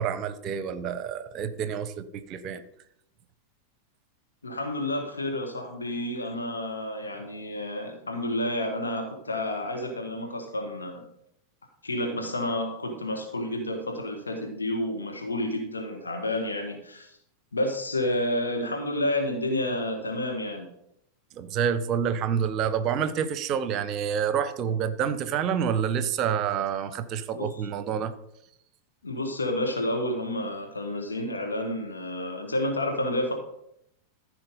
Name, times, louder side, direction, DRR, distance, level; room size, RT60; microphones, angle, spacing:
voice 1, 0.0-2.6 21.4-28.1, right 8 dB, 35° right, 13 dB, 0.8 m, -28 dB
voice 2, 4.4-11.1 11.8-17.2 17.5-20.7 27.3-27.6 29.0-33.3, left 1 dB, 75° left, 3 dB, 1.6 m, -30 dB
14.0 x 5.0 x 5.4 m, 0.76 s
figure-of-eight pair, 90°, 0 cm